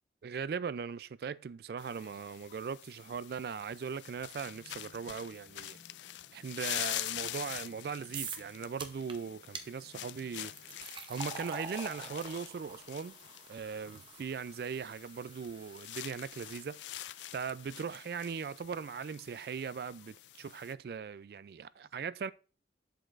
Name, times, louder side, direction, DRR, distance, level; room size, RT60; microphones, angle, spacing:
voice 1, 0.2-5.8 6.3-10.7 11.1-13.2 13.5-16.8 17.3-22.3, right 6 dB, 60° right, 0.3 m, -39 dB
sound 1, 1.8-20.7, left 14 dB, 85° left, 0.3 m, -45 dB
sound 2, 4.4-10.9, left 3 dB, 65° left, 0.8 m, -63 dB
sound 3, 8.1-8.5 8.8-9.1 9.5-9.7 10.4-17.5, right 5 dB, 30° right, 0.6 m, -46 dB
7.7 x 6.5 x 2.5 m
head